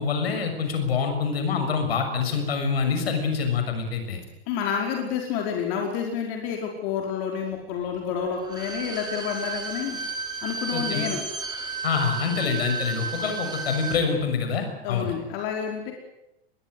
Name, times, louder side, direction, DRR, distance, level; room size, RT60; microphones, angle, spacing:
voice 1, 0.0-4.2 10.7-11.1 11.8-15.2, left 5 dB, 70° left, 6 dB, 6.6 m, -26 dB
voice 2, 4.5-10.0 10.4-11.2 14.8-15.9, left 7 dB, 50° left, 1 dB, 5.0 m, -29 dB
Bowed string instrument, 8.4-14.0 14.3-14.4, right 4 dB, 15° right, 5.3 m, -33 dB
24.5 x 21.5 x 8.1 m, 0.85 s
hypercardioid pair, 100°, 32 cm